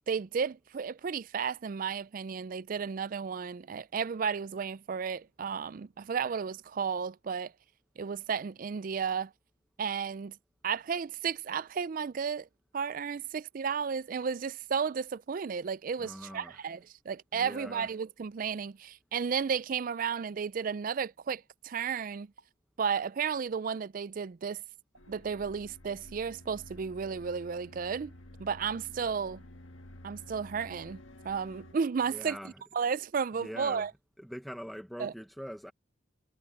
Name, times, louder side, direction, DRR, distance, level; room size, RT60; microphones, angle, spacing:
voice 1, 0.1-7.5 8.0-9.3 9.8-10.4 10.6-12.5 12.7-22.3 22.8-24.6 25.1-28.1 28.4-29.4 30.0-33.9 35.0-35.1, right 6 dB, 45° right, 0.4 m, -33 dB
sound 1, 14.2-14.4 15.3-15.4 16.2-16.4 18.0-18.2 20.1-20.3 21.3-21.5 22.4-22.6 23.8-23.9 24.5-24.7 24.9-25.1, right 3 dB, 65° right, 7.2 m, -57 dB
voice 2, 16.0-16.6 17.3-17.9 32.1-32.6 33.4-33.9 34.2-35.7, equal, ahead, 0.9 m, -43 dB
sound 2, 25.0-31.7, left 1 dB, 85° left, 1.7 m, -51 dB
head